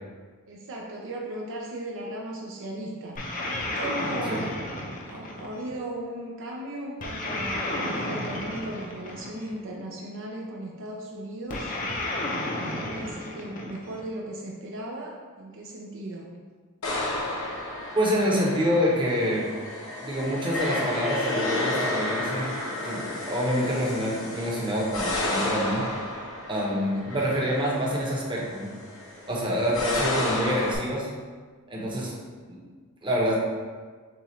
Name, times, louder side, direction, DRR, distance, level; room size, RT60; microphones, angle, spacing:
voice 1, 0.5-3.2 3.6-4.5 5.0-11.7 12.5-16.3 26.5-27.3 31.7-32.2, right 1 dB, 60° right, -2 dB, 0.5 m, -37 dB
sound 1, 3.2-5.8 7.0-9.6 11.5-14.1, left 1 dB, 40° left, 0.6 m, -32 dB
sound 2, 16.8-30.8, left 2 dB, 70° left, 0.9 m, -31 dB
voice 2, 17.9-19.5 20.0-22.5 22.7-25.8 26.5-28.7 29.2-31.1 31.7-32.1 32.5-32.6 33.0-33.4, equal, 25° right, -4 dB, 0.9 m, -26 dB
7.0 x 2.4 x 3.1 m, 1.5 s
head